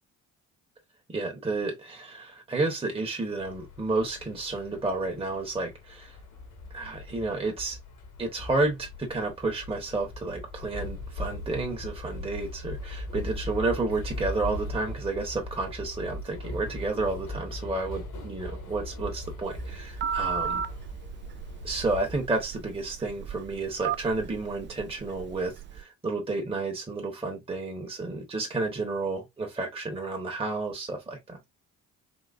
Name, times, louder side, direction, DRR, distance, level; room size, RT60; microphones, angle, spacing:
voice 1, 1.1-6.2 6.7-7.8 8.2-20.6 21.6-31.4, right 3 dB, 15° right, 1.2 m, -31 dB
sound 1, 3.4-22.2, left 1 dB, 65° left, 1.6 m, -39 dB
Telephone, 19.4-25.8, right 7 dB, 30° right, 0.4 m, -36 dB
4.0 x 2.8 x 2.5 m
hypercardioid pair, 45°, 41 cm